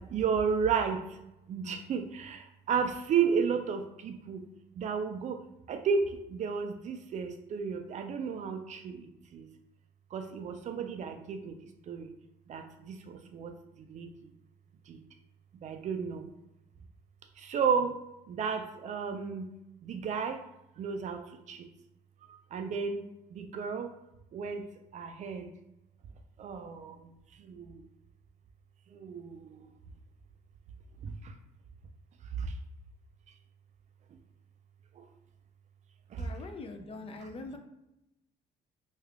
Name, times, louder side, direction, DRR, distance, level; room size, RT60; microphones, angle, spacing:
voice 1, 0.1-1.0 1.5-2.4 2.7-4.4 4.8-5.4 5.7-9.0 9.3-9.4 10.1-11.5 11.9-12.1 12.5-13.5 13.9-14.1 15.6-16.2 17.5-17.9 18.4-19.5 19.9-20.4 20.8-21.2 21.5-21.6 22.5-23.0 23.3-23.9 24.3-24.6 24.9-25.4 26.4-26.9 29.0-29.2, right 6 dB, 45° right, 7 dB, 0.4 m, -32 dB
voice 2, 36.2-37.6, left 3 dB, 35° left, 5 dB, 0.4 m, -43 dB
3.2 x 2.4 x 3.3 m, 0.89 s
cardioid pair, 110°, 17 cm